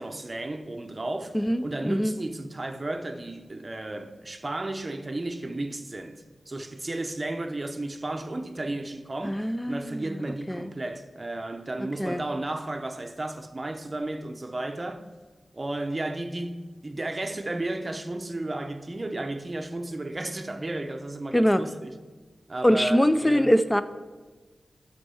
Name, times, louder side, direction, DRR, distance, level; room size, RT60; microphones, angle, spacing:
voice 1, 0.0-15.1 15.5-22.0 22.5-23.5, right 2 dB, 25° right, 0.7 m, -33 dB
voice 2, 1.3-2.1 9.2-10.2 10.5-10.7 12.0-12.2 21.3-21.6 22.6-23.8, equal, 10° left, 0.4 m, -23 dB
11.5 x 4.5 x 7.0 m
wide cardioid pair, 140°, 0 cm